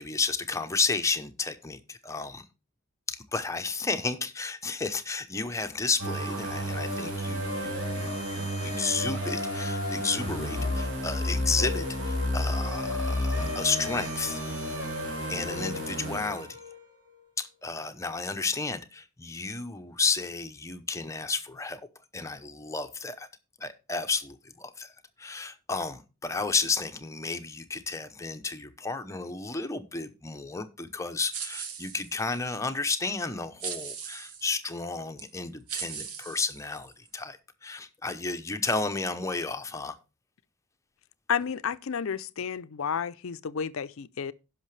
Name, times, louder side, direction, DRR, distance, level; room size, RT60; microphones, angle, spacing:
voice 1, 0.0-2.4 3.1-14.4 15.3-16.6 17.4-21.8 22.1-23.3 23.6-24.9 25.2-40.0, left 4 dB, 15° left, 0.8 m, -32 dB
sound 1, 6.0-16.8, left 1 dB, 55° right, 3.4 m, -31 dB
sound 2, 31.3-32.4 33.6-34.6 35.2-35.3 35.7-37.1, right 7 dB, 90° right, 1.4 m, -38 dB
voice 2, 41.3-44.3, left 7 dB, 65° left, 0.5 m, -31 dB
16.5 x 5.8 x 3.2 m
head